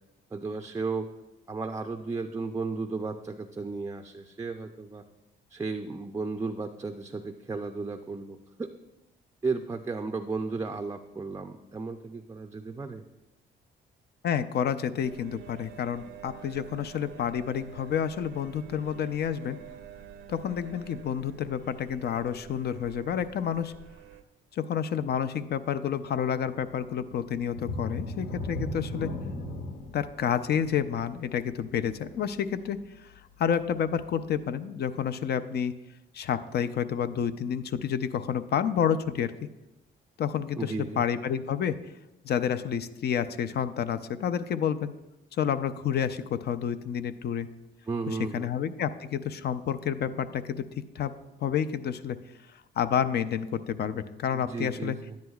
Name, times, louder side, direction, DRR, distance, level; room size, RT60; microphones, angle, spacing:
voice 1, 0.3-1.1 1.5-5.0 5.5-8.7 9.4-13.0 40.6-41.0 47.8-48.5 54.3-55.2, right 4 dB, 15° right, 4 dB, 0.4 m, -34 dB
voice 2, 14.2-19.6 20.3-23.7 24.5-29.1 29.9-33.1 33.4-35.7 36.1-39.3 40.2-41.8 42.2-44.9 45.4-47.5 48.3-50.6 51.0-51.1 51.4-52.2 52.8-55.0, left 8 dB, 55° left, 12 dB, 0.5 m, -29 dB
sound 1, 15.0-24.2, right 8 dB, 85° right, 0.6 m, -48 dB
sound 2, 27.5-33.0 33.4-33.6 34.0-34.1, left 1 dB, 75° left, 1.0 m, -37 dB
10.5 x 9.5 x 2.3 m, 0.97 s
cardioid pair, 90°, 20 cm